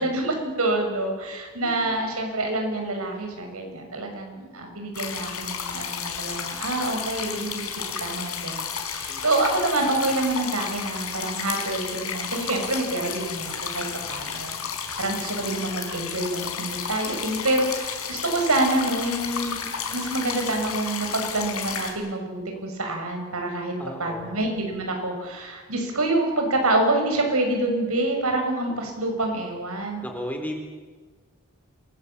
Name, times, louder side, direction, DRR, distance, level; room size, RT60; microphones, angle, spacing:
voice 1, 0.0-7.6 8.0-19.6 19.9-23.7 24.0-30.0, right 2 dB, 80° right, 3 dB, 6.4 m, -27 dB
voice 2, 1.6-2.1 9.1-9.2 23.8-24.4 30.0-30.6, equal, 10° left, 3 dB, 3.9 m, -35 dB
sound 1, 4.9-21.9, left 7 dB, 75° left, 4.6 m, -32 dB
27.0 x 19.5 x 8.7 m, 1.4 s
head